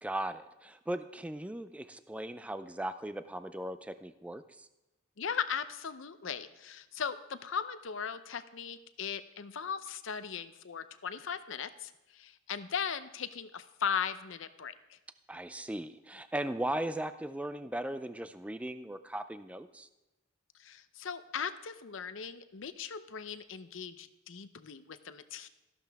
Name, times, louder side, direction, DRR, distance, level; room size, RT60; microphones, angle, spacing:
voice 1, 0.0-4.7 15.3-19.9, right 1 dB, 5° right, 11 dB, 0.3 m, -38 dB
voice 2, 5.2-15.0 20.6-25.5, left 7 dB, 70° left, 12 dB, 0.6 m, -38 dB
13.5 x 12.0 x 3.5 m, 1.0 s
head